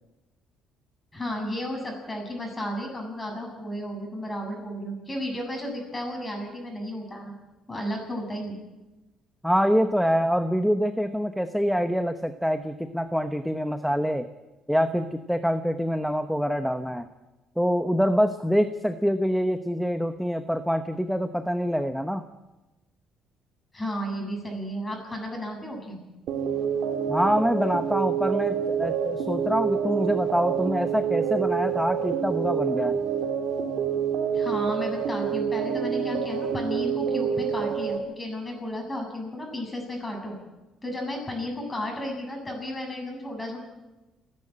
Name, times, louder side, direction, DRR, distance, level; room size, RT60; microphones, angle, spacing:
voice 1, 1.1-7.3 7.7-8.6 23.7-26.0 34.3-40.4 40.8-43.6, left 1 dB, 15° left, 2 dB, 7.6 m, -33 dB
voice 2, 9.4-14.3 14.7-17.1 17.6-22.2 27.1-33.0, equal, ahead, 8 dB, 1.0 m, -25 dB
sound 1, 26.3-38.0, right 7 dB, 75° right, 2.3 m, -27 dB
29.5 x 11.0 x 8.8 m, 1.1 s
cardioid pair, 115°, 0 cm